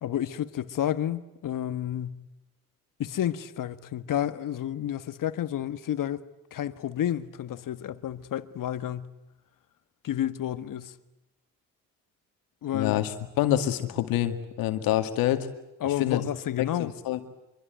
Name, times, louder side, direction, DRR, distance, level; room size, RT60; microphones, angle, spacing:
voice 1, 0.0-2.2 3.0-6.3 6.5-9.1 10.0-10.9 12.6-13.0 15.8-17.0, left 11 dB, 65° left, 1.5 m, -30 dB
voice 2, 12.7-15.5 16.0-16.2 16.6-17.2, left 13 dB, 85° left, 2.2 m, -26 dB
26.0 x 23.5 x 9.3 m
supercardioid pair, 60°, 34 cm